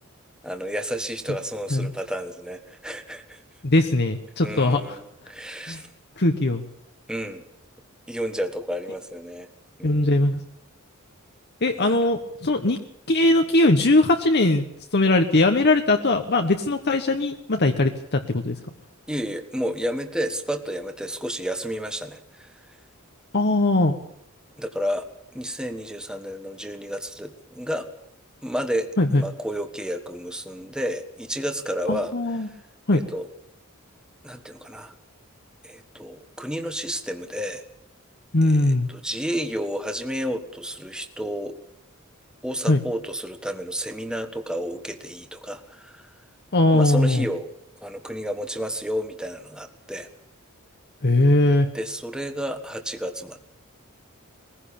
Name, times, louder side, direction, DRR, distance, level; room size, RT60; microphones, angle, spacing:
voice 1, 0.4-3.4 4.4-5.9 7.1-7.4 8.1-9.5 9.8-10.2 11.8-12.0 19.1-22.5 24.6-25.1 25.3-27.9 28.4-28.9 29.2-32.1 32.9-33.3 34.2-34.9 35.6-37.6 38.4-41.6 42.4-46.1 46.7-47.5 47.8-50.1 51.7-53.4, equal, 5° right, 7 dB, 1.4 m, -31 dB
voice 2, 3.6-5.0 5.7-5.8 6.2-6.6 9.8-10.4 11.6-12.8 13.1-14.6 14.9-18.6 23.3-23.9 29.0-29.2 31.9-32.5 32.9-33.0 38.3-38.9 42.7-42.8 46.5-47.3 51.0-51.7, left 2 dB, 50° left, 5 dB, 1.2 m, -20 dB
21.0 x 16.0 x 8.6 m, 0.74 s
head